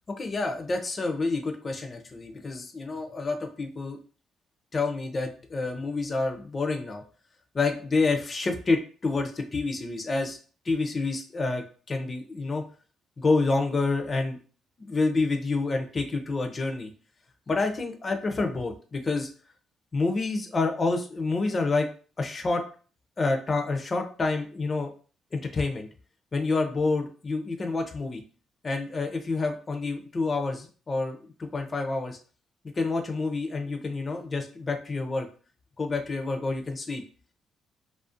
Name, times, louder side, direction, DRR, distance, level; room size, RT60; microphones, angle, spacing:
voice 1, 0.2-4.0 4.7-7.0 7.5-10.4 10.7-12.6 13.2-14.4 14.8-16.9 17.5-19.3 19.9-21.9 22.2-22.6 23.2-24.9 25.3-25.9 26.3-28.2 28.6-32.2 32.8-35.3 35.8-37.0, left 3 dB, 35° left, 4 dB, 0.4 m, -28 dB
2.4 x 2.0 x 2.5 m, 0.40 s
cardioid pair, 90°, 0 cm